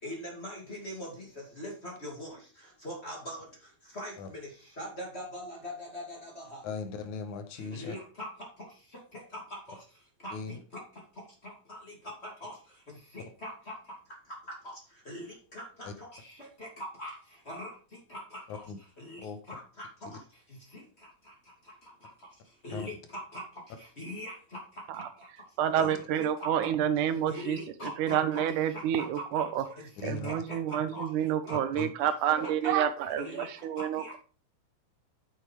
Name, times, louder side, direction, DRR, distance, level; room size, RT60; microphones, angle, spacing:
voice 1, 0.0-1.3 1.6-2.4 2.8-3.4 3.9-4.5 4.8-6.6 7.7-8.3 9.1-9.4 9.7-9.8 10.2-10.6 11.4-11.8 12.0-12.5 13.1-13.7 14.6-14.7 15.1-17.2 17.5-17.7 18.1-18.6 19.0-19.9 20.7-20.8 22.6-23.4 24.0-24.6 25.8-26.3 27.3-29.5 30.0-31.1 31.5-31.6 32.0-32.1 32.4-32.8 33.2-33.5 33.8-34.2, left 1 dB, 20° left, -1 dB, 2.7 m, -42 dB
voice 2, 6.6-8.0 10.3-10.6 15.8-15.9 18.5-18.8 19.2-19.4 22.7-22.9 25.8-25.9 30.0-30.3 31.8-31.9, left 5 dB, 70° left, 7 dB, 2.6 m, -38 dB
voice 3, 25.6-27.6 28.0-29.6 30.0-34.2, right 10 dB, 75° right, 10 dB, 2.4 m, -28 dB
8.1 x 7.0 x 4.6 m, 0.37 s
omnidirectional pair, 3.7 m